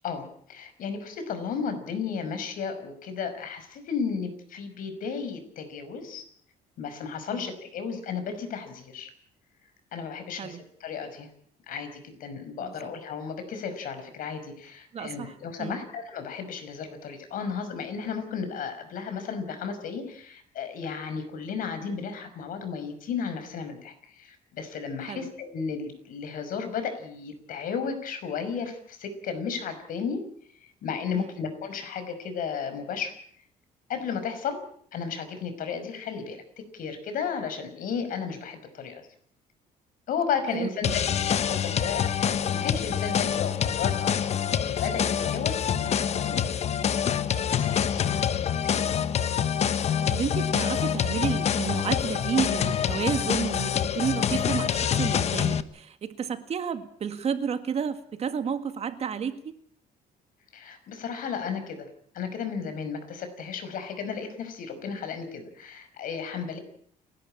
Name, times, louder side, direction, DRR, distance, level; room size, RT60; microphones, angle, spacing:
voice 1, 0.0-6.2 6.8-9.1 9.9-11.3 11.7-30.2 30.8-33.1 33.9-34.6 34.9-39.1 40.1-41.0 41.3-44.1 44.6-46.7 47.5-48.9 60.5-61.9 62.1-66.6, left 6 dB, 65° left, 8 dB, 5.5 m, -34 dB
voice 2, 12.6-12.9 14.9-15.8 25.1-25.3 31.1-31.3 40.5-40.9 50.1-59.5, right 7 dB, 45° right, 9 dB, 1.9 m, -31 dB
sound 1, 40.8-55.6, left 8 dB, 45° left, 1.1 m, -26 dB
29.5 x 12.0 x 8.8 m, 0.62 s
cardioid pair, 125°, 16 cm